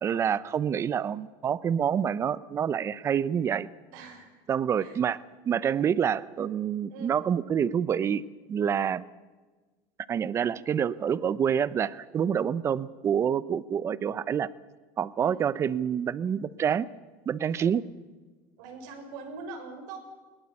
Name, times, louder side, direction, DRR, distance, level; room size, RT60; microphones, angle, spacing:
voice 1, 0.0-3.7 4.5-5.2 5.5-9.0 10.1-14.5 15.0-16.9 17.3-17.8, right 8 dB, 30° right, 18 dB, 0.8 m, -27 dB
voice 2, 3.9-4.3 4.8-5.0 6.9-7.1 15.2-15.4 17.5-17.6 18.6-20.0, right 4 dB, 85° right, 3 dB, 6.3 m, -42 dB
21.5 x 20.0 x 8.5 m, 1.3 s
cardioid pair, 145°, 10 cm